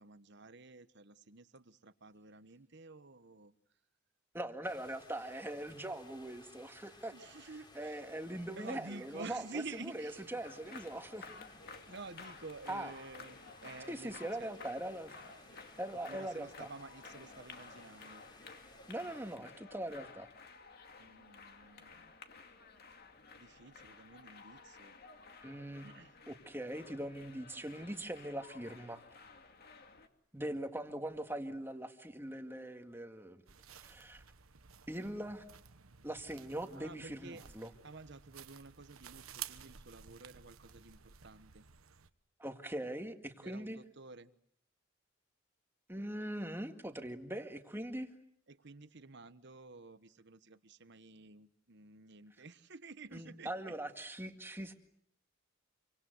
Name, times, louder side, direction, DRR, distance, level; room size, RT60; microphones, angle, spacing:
voice 1, 0.0-3.5 7.1-8.0 8.6-10.2 11.9-14.5 15.9-18.2 21.0-22.1 23.4-25.0 25.8-26.1 36.8-37.4 37.8-41.6 43.4-44.3 48.5-53.7, right 3 dB, 55° right, 13 dB, 1.2 m, -51 dB
voice 2, 4.3-7.1 7.7-11.6 12.7-12.9 13.9-15.1 15.8-16.7 18.9-20.3 25.4-25.9 26.3-29.0 30.3-33.4 33.7-34.2 34.9-35.4 36.0-37.7 42.4-43.8 45.9-48.1 53.1-54.7, right 1 dB, 10° right, 6 dB, 2.0 m, -41 dB
sound 1, 4.6-19.4, left 2 dB, 20° left, 3.4 m, -60 dB
sound 2, 10.4-30.1, left 4 dB, 50° left, 2.4 m, -54 dB
sound 3, 33.5-42.1, right 10 dB, 85° right, 1.3 m, -53 dB
27.5 x 24.5 x 8.0 m, 0.68 s
head